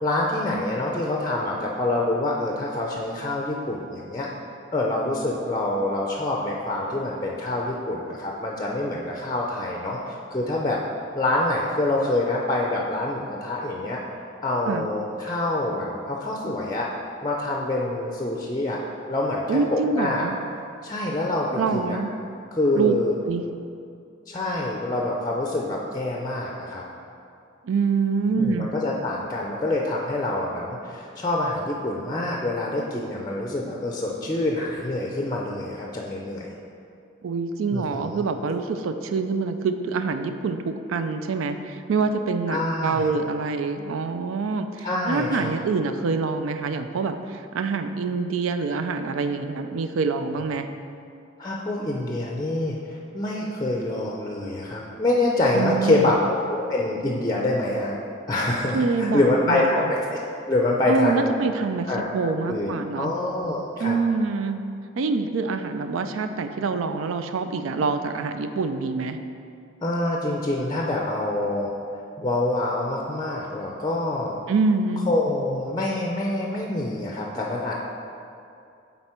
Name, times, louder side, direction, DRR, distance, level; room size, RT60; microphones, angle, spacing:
voice 1, 0.0-4.3 4.7-10.8 11.1-14.0 14.4-16.9 17.2-18.8 19.1-20.3 20.8-22.0 22.5-23.1 24.3-26.8 28.3-36.5 37.7-38.2 42.5-43.1 44.8-45.5 50.4-50.5 51.4-58.0 58.3-60.2 60.5-61.4 61.9-64.0 69.8-71.7 72.2-74.4 75.1-77.8, left 2 dB, 20° left, -1 dB, 0.5 m, -26 dB
voice 2, 19.5-20.4 21.6-22.1 22.7-22.9 23.2-23.4 27.6-28.7 37.2-50.7 55.5-56.1 58.7-59.9 60.9-63.1 63.8-64.6 65.0-69.2 74.5-75.1, right 4 dB, 85° right, 8 dB, 0.4 m, -25 dB
7.8 x 4.1 x 4.4 m, 2.5 s
head